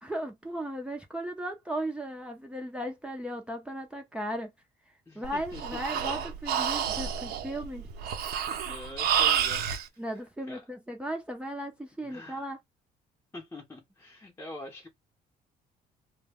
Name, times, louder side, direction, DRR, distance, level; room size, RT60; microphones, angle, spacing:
voice 1, 0.0-4.5 5.2-7.9 10.0-12.6, right 1 dB, 5° right, 0.6 m, -36 dB
voice 2, 5.1-6.2 8.6-9.7 9.9-10.2 10.5-10.7 12.0-12.5 13.3-14.9, left 2 dB, 15° left, 0.9 m, -45 dB
Breathing, 5.2-9.8, right 8 dB, 70° right, 0.7 m, -29 dB
2.2 x 2.2 x 3.4 m
cardioid pair, 110°, 17 cm